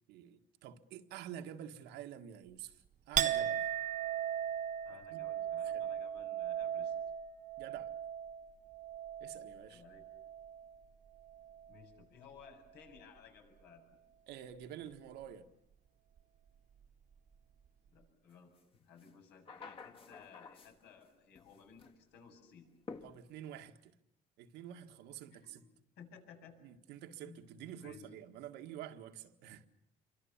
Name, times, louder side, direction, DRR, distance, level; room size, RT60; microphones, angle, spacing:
voice 1, 0.1-3.6 5.1-5.2 5.6-5.9 7.6-7.9 9.2-9.8 14.3-15.5 23.0-24.0 24.4-25.6 26.6-29.7, right 10 dB, 90° right, 1.8 m, -48 dB
Chink clink, 3.2-10.8 11.2-11.9, right 10 dB, 45° right, 1.3 m, -38 dB
voice 2, 4.8-6.9 9.7-10.0 11.7-13.9 17.9-22.7 25.3-25.7 26.0-26.6 27.2-28.1, left 6 dB, 80° left, 7.6 m, -58 dB
sound 1, 18.6-18.7 19.0-21.1 21.4-22.0 22.9-23.6, left 4 dB, 30° left, 1.9 m, -51 dB
28.0 x 24.5 x 7.3 m
cardioid pair, 110°, 17 cm